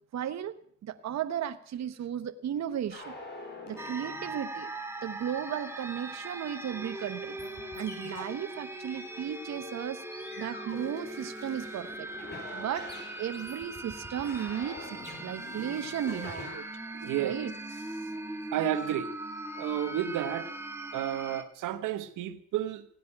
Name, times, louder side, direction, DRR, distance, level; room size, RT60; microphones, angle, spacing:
voice 1, 0.1-0.5 0.8-3.2 3.7-4.7 5.0-7.4 7.8-12.1 12.5-12.9 13.2-16.6 17.2-17.5, right 9 dB, 60° right, 1.1 m, -35 dB
sound 1, 2.9-4.7 6.9-7.1 7.4-8.5 10.1-11.8 12.2-16.7, left 2 dB, 35° left, 5.2 m, -45 dB
sound 2, 3.8-21.4, right 1 dB, 10° right, 2.1 m, -40 dB
voice 2, 17.0-17.5 18.5-19.1 19.6-20.5 20.9-22.8, right 11 dB, 85° right, 1.2 m, -31 dB
17.0 x 9.5 x 8.7 m
cardioid pair, 90°, 30 cm